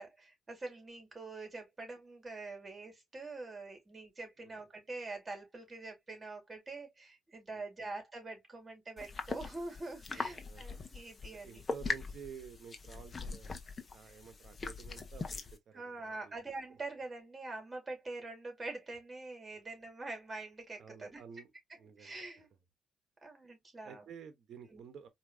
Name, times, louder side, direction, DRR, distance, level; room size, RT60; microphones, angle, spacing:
voice 1, 0.0-11.6 14.0-14.2 15.7-21.2 22.0-22.5 23.2-24.1 24.7-24.8, right 2 dB, 25° right, 2.4 m, -45 dB
sound 1, 9.0-15.6, left 4 dB, 35° left, 0.9 m, -41 dB
voice 2, 10.2-10.7 11.2-13.5 13.9-16.4 20.8-21.5 21.8-22.2 23.8-25.1, right 7 dB, 65° right, 1.0 m, -51 dB
4.6 x 2.8 x 2.6 m
cardioid pair, 90°, 0 cm